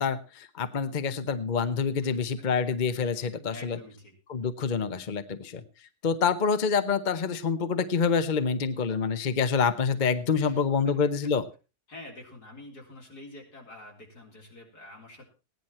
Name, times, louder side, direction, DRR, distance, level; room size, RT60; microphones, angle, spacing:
voice 1, 0.0-3.8 4.3-5.6 6.0-11.4, left 5 dB, 35° left, 11 dB, 0.9 m, -27 dB
voice 2, 3.1-4.1 10.3-10.6 11.9-15.3, left 2 dB, 80° left, 0 dB, 4.7 m, -47 dB
16.5 x 10.5 x 4.3 m, 0.32 s
omnidirectional pair, 1.7 m